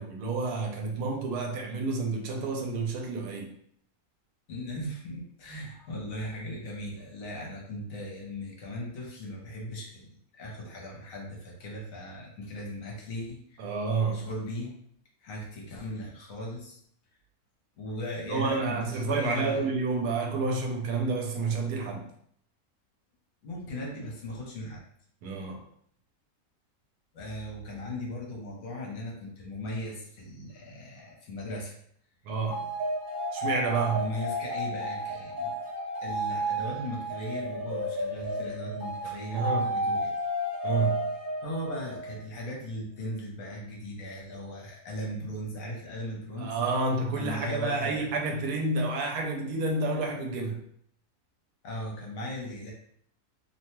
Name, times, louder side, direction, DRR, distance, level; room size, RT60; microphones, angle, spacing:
voice 1, 0.0-3.5 13.6-14.3 18.3-22.0 25.2-25.6 32.2-32.6 33.3-34.1 39.3-39.7 40.6-41.1 46.4-50.6, right 3 dB, 85° right, 2 dB, 1.1 m, -29 dB
voice 2, 4.5-13.7 14.1-14.7 15.2-16.8 17.8-19.7 23.4-24.8 27.1-31.7 33.9-35.6 36.0-40.1 41.4-46.5 47.1-48.0 51.6-52.7, left 1 dB, 65° left, -2 dB, 1.1 m, -38 dB
sound 1, 32.5-42.2, equal, 60° right, 1.2 m, -32 dB
2.8 x 2.2 x 2.9 m, 0.66 s
omnidirectional pair, 1.6 m